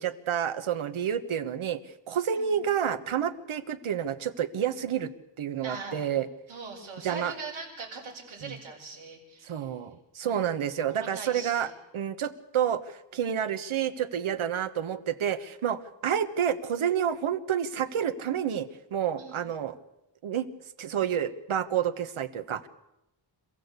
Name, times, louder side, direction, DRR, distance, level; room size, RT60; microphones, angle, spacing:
voice 1, 0.0-1.8 2.1-5.1 5.4-6.3 7.0-7.3 8.4-8.5 9.4-19.7 20.2-20.5 20.8-22.7, right 9 dB, 85° right, 11 dB, 1.5 m, -29 dB
voice 2, 5.6-6.1 6.5-9.7 10.2-10.6 10.9-11.7 19.2-19.5, right 4 dB, 65° right, -4 dB, 6.1 m, -41 dB
27.0 x 16.0 x 8.4 m, 0.88 s
wide cardioid pair, 175°, 48 cm